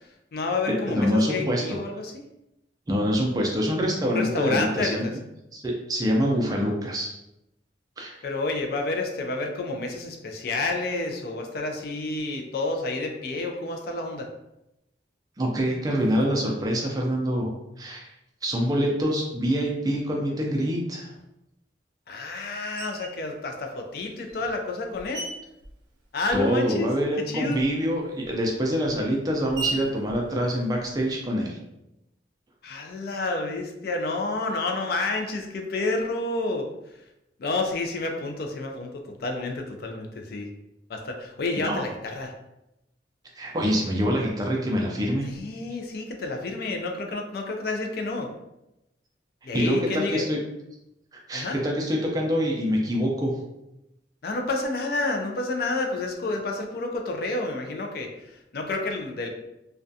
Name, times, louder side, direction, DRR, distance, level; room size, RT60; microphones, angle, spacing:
voice 1, 0.0-2.2 4.1-5.1 8.2-14.3 22.1-25.3 26.1-26.9 27.3-27.6 32.6-36.7 37.4-40.5 40.9-42.3 45.2-48.3 49.4-50.3 51.3-51.6 54.2-59.3, left 2 dB, 55° left, 3 dB, 0.3 m, -29 dB
voice 2, 0.7-1.8 2.9-5.0 5.5-7.2 8.0-8.2 15.4-17.5 17.8-18.1 18.4-21.1 26.3-31.6 41.6-41.8 43.4-45.3 49.5-50.4 51.1-53.4, equal, 20° right, -1 dB, 0.3 m, -25 dB
Screech, 22.8-23.2 24.0-26.7 27.0-31.3, right 3 dB, 80° right, 0.5 m, -39 dB
2.3 x 2.2 x 2.6 m, 0.89 s
head